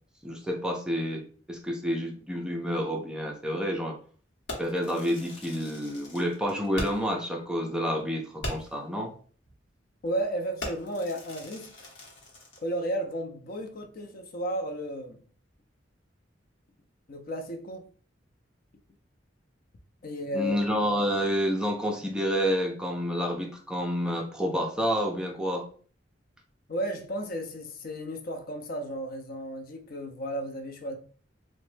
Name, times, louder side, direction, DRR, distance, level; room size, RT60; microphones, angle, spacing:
voice 1, 0.2-1.2 1.5-4.0 4.6-9.1 20.3-25.7, equal, 5° right, 0.4 m, -29 dB
Fireworks, 4.5-7.2 7.5-7.6 8.0-8.1 8.4-8.9 9.5-9.7 10.0-10.2 10.6-12.7, left 1 dB, 75° left, 0.9 m, -40 dB
voice 2, 10.0-11.7 12.6-15.3 17.1-17.9 20.0-20.6 26.7-31.0, right 1 dB, 50° left, 0.5 m, -33 dB
3.0 x 2.1 x 3.1 m
head